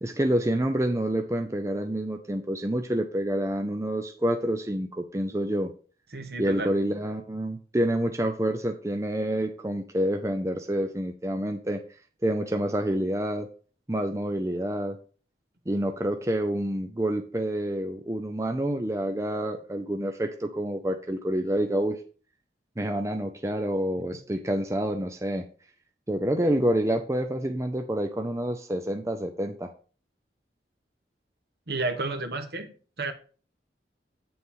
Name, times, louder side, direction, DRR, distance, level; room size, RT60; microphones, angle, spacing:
voice 1, 0.0-5.7 6.4-11.8 12.2-13.5 13.9-15.0 15.7-22.0 22.8-25.4 26.1-29.7, right 1 dB, 15° right, 6 dB, 0.6 m, -28 dB
voice 2, 6.1-6.7 24.0-24.1 31.7-33.1, right 3 dB, 60° right, 5 dB, 1.3 m, -32 dB
8.7 x 6.9 x 3.8 m, 0.40 s
head